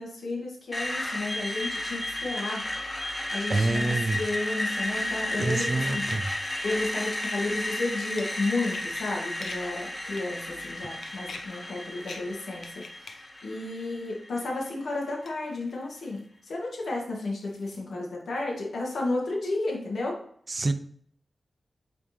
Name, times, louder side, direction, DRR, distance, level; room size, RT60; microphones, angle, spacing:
voice 1, 0.0-2.7 3.3-6.0 6.6-20.2, left 2 dB, 85° left, -2 dB, 1.9 m, -32 dB
Screech, 0.7-14.7, left 1 dB, 15° left, 1.1 m, -33 dB
sound 1, 3.5-4.2 4.6-6.6 7.2-9.8 10.1-10.7 11.0-11.5 11.9-12.3 12.6-13.2 13.5-13.6 15.3-16.2 16.8-17.8 18.4-18.8 19.7-19.8, left 3 dB, 60° left, 0.8 m, -46 dB
voice 2, 3.5-4.2 5.4-6.3 20.5-20.7, right 3 dB, 30° right, 10 dB, 0.4 m, -27 dB
8.7 x 3.5 x 3.3 m, 0.62 s
wide cardioid pair, 175°, 0 cm